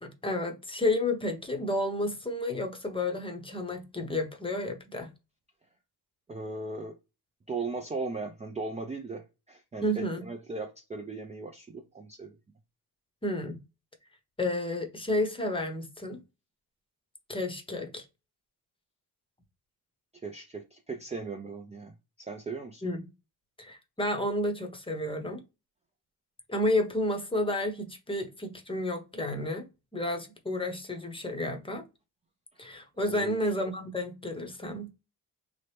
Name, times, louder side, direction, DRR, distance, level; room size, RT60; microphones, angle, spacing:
voice 1, 0.0-5.1 9.8-10.2 13.2-13.6 14.4-16.2 17.3-18.0 22.8-23.0 23.6-25.4 26.5-29.7 29.9-31.8 32.6-34.9, left 1 dB, 15° left, 0.8 m, -31 dB
voice 2, 6.3-6.9 7.5-12.4 20.2-22.9 33.1-33.4, right 3 dB, 15° right, 0.4 m, -38 dB
2.9 x 2.0 x 3.3 m
supercardioid pair, 70°, 41 cm